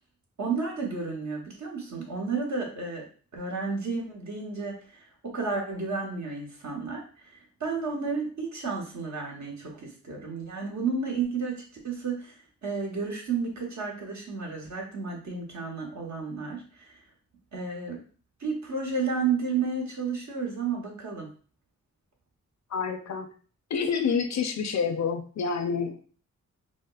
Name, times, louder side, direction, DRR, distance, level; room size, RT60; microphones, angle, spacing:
voice 1, 0.4-3.1 3.3-17.0 17.5-18.0 18.4-21.3, right 4 dB, 65° right, -1 dB, 1.1 m, -32 dB
voice 2, 22.7-23.3 23.7-26.0, left 6 dB, 60° left, 6 dB, 0.5 m, -28 dB
4.8 x 2.0 x 2.3 m, 0.42 s
cardioid pair, 65°, 31 cm